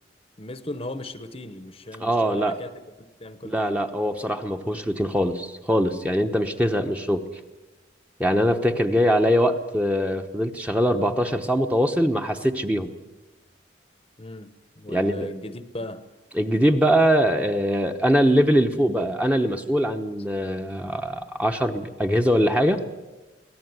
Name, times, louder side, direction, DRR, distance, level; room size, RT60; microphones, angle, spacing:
voice 1, 0.4-2.7 3.0-3.8 14.2-16.1, left 1 dB, 30° left, 1.0 m, -37 dB
voice 2, 2.0-2.6 3.4-7.3 8.2-12.9 14.9-15.3 16.3-22.8, equal, 5° right, 1.0 m, -22 dB
23.5 x 17.0 x 9.6 m
head